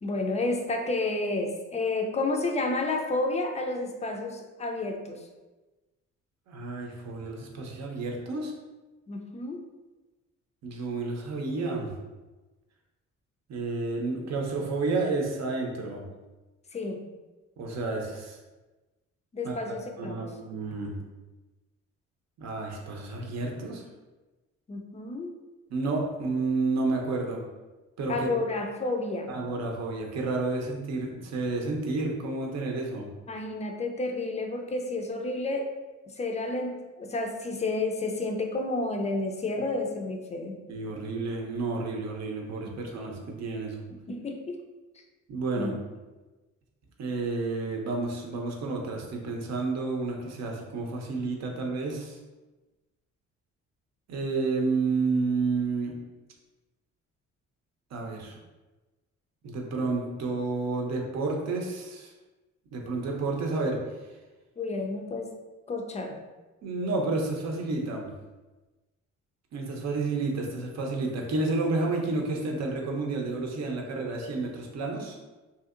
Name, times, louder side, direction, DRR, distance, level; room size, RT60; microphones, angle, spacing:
voice 1, 0.0-5.2 9.1-9.6 16.7-17.0 19.3-20.3 24.7-25.3 28.1-29.3 33.3-35.7 36.1-40.6 42.6-42.8 44.1-44.6 45.6-45.7 64.6-65.3 65.7-66.2, left 2 dB, 25° left, 3 dB, 0.4 m, -31 dB
voice 2, 6.5-8.5 10.6-12.0 13.5-16.0 17.6-18.4 19.4-19.6 20.0-21.0 22.4-23.8 25.7-27.4 28.0-28.3 29.3-33.1 40.7-43.8 45.3-45.8 47.0-52.2 54.1-55.9 57.9-58.4 59.4-62.1 62.7-63.8 66.6-68.1 69.5-75.2, right 3 dB, 60° right, 0 dB, 0.7 m, -30 dB
2.7 x 2.7 x 2.4 m, 1.2 s
cardioid pair, 90°, 30 cm